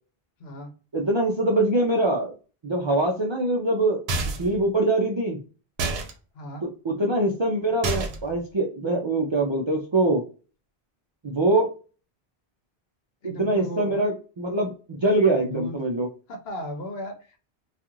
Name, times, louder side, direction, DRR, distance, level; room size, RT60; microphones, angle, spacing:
voice 1, 0.4-0.7 6.3-6.7 13.2-14.0 15.4-15.9 16.3-17.4, equal, 75° left, 4 dB, 0.9 m, -36 dB
voice 2, 0.9-2.3 2.6-4.0 4.4-5.4 6.6-10.2 11.2-11.7 13.2-16.1, right 2 dB, 50° right, -1 dB, 0.3 m, -23 dB
sound 1, 4.1-4.6 5.8-6.1 7.8-8.3, right 2 dB, 80° right, 0.9 m, -28 dB
2.4 x 2.4 x 2.8 m, 0.36 s
omnidirectional pair, 1.1 m